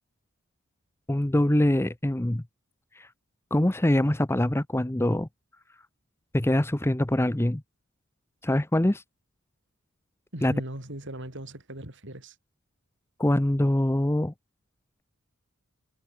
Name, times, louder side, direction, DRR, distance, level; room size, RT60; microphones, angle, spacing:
voice 1, 1.1-2.4 3.0-3.1 3.5-5.3 6.3-7.6 8.4-9.0 10.4-10.5 13.2-14.3, left 1 dB, 10° left, 0.7 m, -24 dB
voice 2, 10.3-12.4, right 1 dB, 60° right, 5.6 m, -39 dB
head